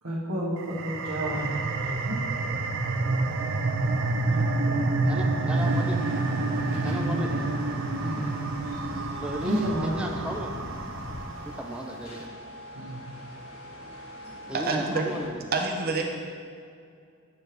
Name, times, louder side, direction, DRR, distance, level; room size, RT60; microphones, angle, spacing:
voice 1, 0.0-2.2 4.3-5.7 6.6-7.6 8.0-8.5 9.4-9.9 11.5-11.6 12.7-13.1 14.4-14.5 15.1-15.2, right 1 dB, 75° right, -6 dB, 1.6 m, -32 dB
sound 1, 0.6-11.7, right 2 dB, 60° right, 0.5 m, -28 dB
sound 2, 2.7-11.2, left 1 dB, 35° left, 0.6 m, -44 dB
voice 2, 5.0-6.0 6.8-7.3 9.2-10.6 11.4-12.3 14.5-15.4, equal, 5° right, 1 dB, 0.5 m, -35 dB
sound 3, 5.5-15.3, equal, 85° left, 1.5 m, -44 dB
voice 3, 14.5-15.1 15.5-16.0, right 3 dB, 45° right, 2 dB, 0.9 m, -27 dB
8.6 x 3.4 x 5.9 m, 2.3 s
head